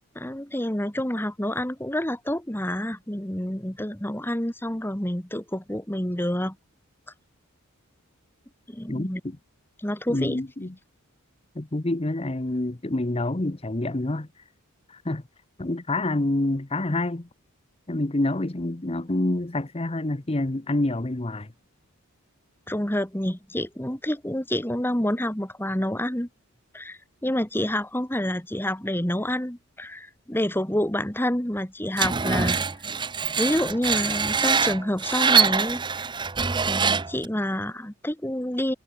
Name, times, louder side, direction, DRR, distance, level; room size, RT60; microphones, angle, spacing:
voice 1, 0.1-6.5 8.7-9.2 9.8-10.4 22.7-26.3 26.7-32.6 33.4-36.1 36.7-38.7, left 1 dB, 10° left, 1.7 m, -28 dB
voice 2, 8.9-9.4 10.1-10.7 11.5-14.3 14.9-15.2 15.6-17.3 17.9-21.5, left 2 dB, 25° left, 0.9 m, -27 dB
Screech, 32.0-37.3, right 5 dB, 20° right, 0.7 m, -24 dB
head